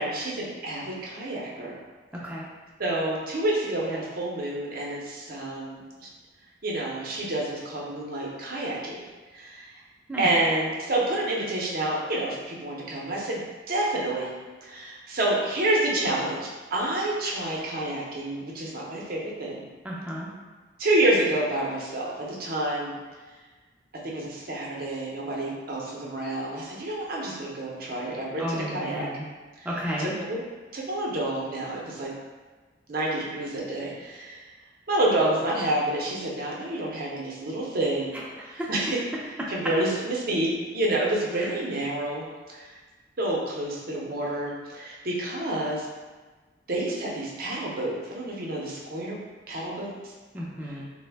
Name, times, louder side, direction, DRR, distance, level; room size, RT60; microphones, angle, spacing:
voice 1, 0.0-1.7 2.8-6.1 6.6-9.0 9.3-9.7 10.2-13.4 13.7-14.3 14.6-19.6 20.8-23.0 24.0-29.1 30.0-30.4 30.7-32.1 32.9-34.4 34.9-38.1 38.5-39.0 39.5-42.2 43.2-45.9 46.7-49.2 49.5-49.9, right 1 dB, 50° right, -3 dB, 0.6 m, -28 dB
voice 2, 2.1-2.5 10.1-10.3 19.8-20.3 28.4-29.2 29.6-30.1 38.1-38.7 39.4-39.5 41.3-41.5 50.3-50.8, equal, 10° right, -4 dB, 0.4 m, -33 dB
3.1 x 2.0 x 3.3 m, 1.3 s
head